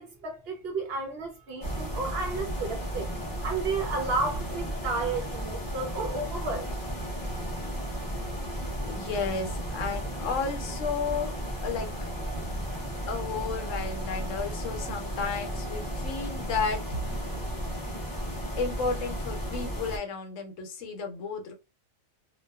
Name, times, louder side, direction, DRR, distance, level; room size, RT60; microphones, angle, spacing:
voice 1, 0.0-3.1 3.4-6.7, right 3 dB, 60° right, 0.7 m, -32 dB
sound 1, 1.6-20.0, equal, 25° left, 0.5 m, -34 dB
voice 2, 8.8-11.4 11.6-12.1 13.1-16.8 18.6-21.5, left 5 dB, 75° left, 1.0 m, -33 dB
2.5 x 2.2 x 2.2 m
omnidirectional pair, 1.4 m